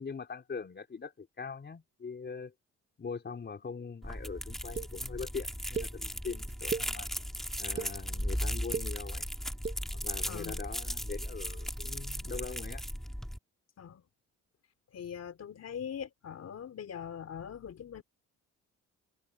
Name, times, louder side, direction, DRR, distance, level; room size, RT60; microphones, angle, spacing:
voice 1, 0.0-2.5 3.0-7.1 7.6-9.3 9.9-12.8, left 5 dB, 35° left, 4.3 m, -42 dB
sound 1, 4.0-13.4, equal, ahead, 1.8 m, -37 dB
sound 2, 4.7-4.9 5.7-5.9 6.5-6.9 7.5-7.9 8.5-8.9 9.5-9.8, right 5 dB, 35° right, 1.2 m, -35 dB
voice 2, 10.3-10.6 13.8-14.0 14.9-18.0, left 8 dB, 55° left, 3.8 m, -42 dB
cardioid pair, 90°, 30 cm